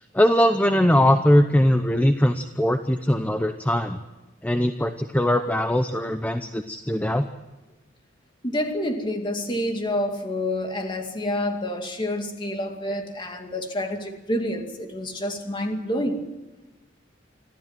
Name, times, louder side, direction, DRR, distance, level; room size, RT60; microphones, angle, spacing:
voice 1, 0.1-4.0 4.4-7.2, left 1 dB, 10° left, 0.8 m, -21 dB
voice 2, 8.4-16.3, left 1 dB, 25° left, 2.5 m, -28 dB
26.0 x 15.0 x 7.6 m
head